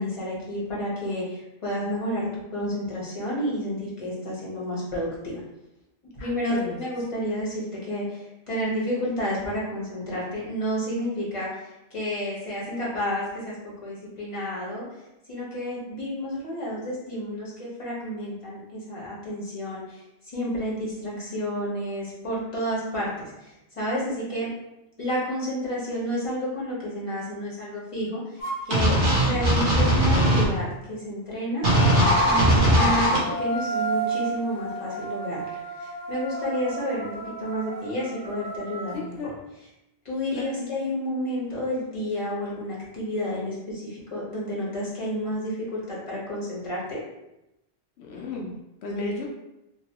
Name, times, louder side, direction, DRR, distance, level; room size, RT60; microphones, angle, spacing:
voice 1, 0.0-5.4 6.2-13.6 13.8-14.8 15.3-24.5 25.0-31.7 32.2-35.4 35.8-37.1 37.4-39.3 40.0-47.0, equal, 30° left, -6 dB, 1.2 m, -30 dB
voice 2, 6.2-6.8 21.1-21.2 38.9-39.3 40.3-40.7 48.0-48.5 48.8-49.3, left 3 dB, 85° left, -2 dB, 0.9 m, -34 dB
sound 1, 28.4-28.7 31.6-39.0, right 3 dB, 20° right, 1.5 m, -32 dB
sound 2, 28.7-30.4 31.6-33.2, right 1 dB, 55° right, 1.0 m, -19 dB
2.9 x 2.9 x 2.8 m, 0.91 s
omnidirectional pair, 1.1 m